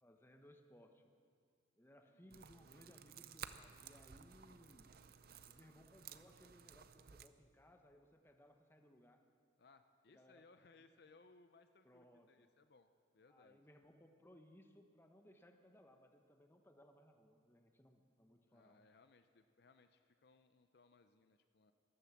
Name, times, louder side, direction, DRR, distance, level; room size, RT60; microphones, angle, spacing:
voice 1, 0.0-1.1 1.8-4.9 5.4-9.2 10.1-10.4 11.8-12.3 13.3-18.8, equal, 10° left, 5 dB, 0.9 m, -64 dB
voice 2, 2.0-2.4 5.3-5.7 9.6-12.9 13.1-13.6 18.5-21.7, left 3 dB, 55° left, 9 dB, 0.5 m, -67 dB
sound 1, 2.3-7.3, right 8 dB, 50° right, 0.5 m, -56 dB
13.5 x 13.0 x 7.1 m, 2.3 s
head